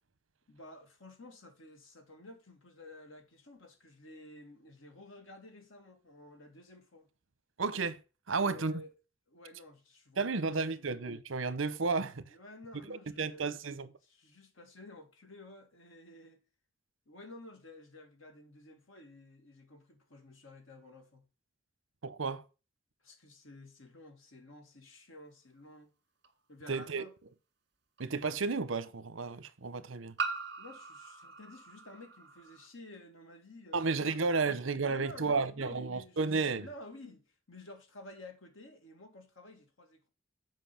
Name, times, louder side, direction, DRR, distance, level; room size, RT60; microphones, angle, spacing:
voice 1, 0.5-7.1 8.3-8.9 9.3-10.9 12.3-13.5 14.1-16.4 17.1-21.2 23.0-25.9 26.5-27.1 30.6-34.5 34.8-36.3 36.6-40.1, left 1 dB, 85° left, 2.2 m, -52 dB
voice 2, 7.6-8.0 8.3-8.8 10.2-12.4 12.9-13.9 22.0-22.4 26.7-27.0 28.0-30.2 33.7-36.7, right 4 dB, 75° right, 0.9 m, -32 dB
sound 1, 26.2-26.3 28.0-28.1 30.2-32.7, right 4 dB, 60° right, 1.9 m, -40 dB
7.6 x 5.4 x 5.7 m
head